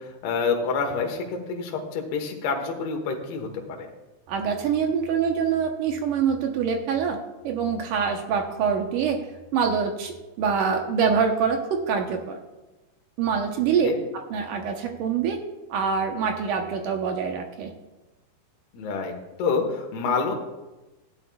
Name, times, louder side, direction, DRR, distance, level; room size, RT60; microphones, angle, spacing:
voice 1, 0.0-3.9 13.8-14.0 18.7-19.1 19.4-20.3, left 5 dB, 80° left, 2 dB, 3.2 m, -27 dB
voice 2, 4.3-7.2 7.4-9.2 9.5-12.4 13.2-13.9 14.3-15.4 15.7-17.7, right 6 dB, 70° right, 4 dB, 2.0 m, -25 dB
16.0 x 10.5 x 2.3 m, 1.1 s
omnidirectional pair, 4.6 m